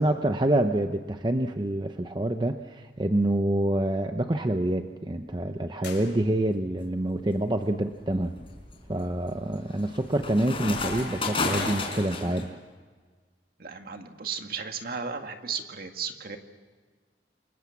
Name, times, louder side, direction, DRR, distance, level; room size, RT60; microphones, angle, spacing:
voice 1, 0.0-8.3 8.9-12.6, right 1 dB, 25° right, 7 dB, 0.8 m, -27 dB
sound 1, 5.8-6.8, left 6 dB, 80° left, 6.2 m, -46 dB
sound 2, 6.9-7.2 7.8-12.4, left 3 dB, 30° left, 4.9 m, -32 dB
voice 2, 13.6-16.4, right 6 dB, 55° right, 5 dB, 2.1 m, -35 dB
28.5 x 22.0 x 7.3 m, 1.5 s
head